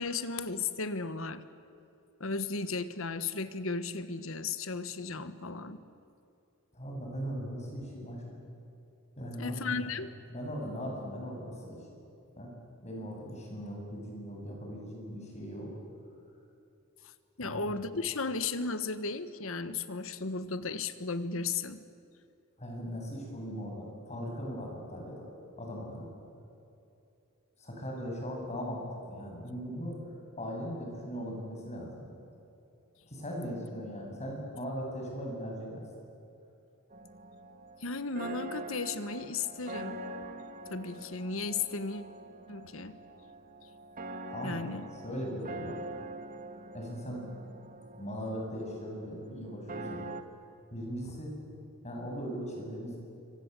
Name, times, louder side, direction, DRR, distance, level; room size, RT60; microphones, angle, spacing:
voice 1, 0.0-1.4 2.2-5.8 9.4-10.1 17.4-21.8 37.8-40.0 40.7-42.0 42.5-43.0 44.4-44.9, left 4 dB, 70° left, 12 dB, 1.4 m, -35 dB
voice 2, 6.7-8.2 9.2-9.9 10.3-12.0 12.4-12.5 12.8-15.8 17.4-17.7 22.6-25.3 25.6-26.1 27.6-30.0 30.4-32.1 33.1-35.8 44.3-44.6 45.0-45.8 46.7-47.3 47.9-50.0 50.7-51.3 51.8-53.0, equal, 35° left, 0 dB, 7.8 m, -39 dB
sound 1, 36.9-50.2, right 2 dB, 40° right, 1.5 m, -44 dB
27.0 x 24.5 x 8.3 m, 2.7 s
head